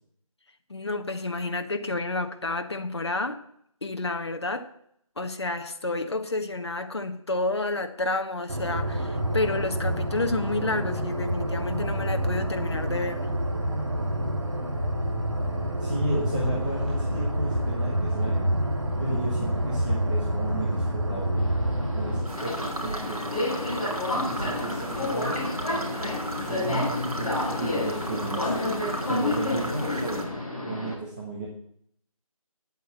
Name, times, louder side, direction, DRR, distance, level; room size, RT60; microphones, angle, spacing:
voice 1, 0.7-3.4 3.8-4.7 5.2-13.3, left 2 dB, 50° left, 6 dB, 1.4 m, -30 dB
sound 1, 8.5-22.2, right 1 dB, 50° right, 3.4 m, -28 dB
voice 2, 15.8-18.5 19.0-21.4 21.9-23.2 24.1-25.6 26.4-28.7 29.0-31.5, right 1 dB, 15° right, -5 dB, 1.4 m, -34 dB
Subway metro underground, 21.4-30.9, left 2 dB, 10° left, 3.0 m, -30 dB
sound 2, 22.3-30.3, right 1 dB, 90° right, 3.4 m, -35 dB
10.0 x 8.4 x 7.9 m, 0.69 s
figure-of-eight pair, 170°, 18 cm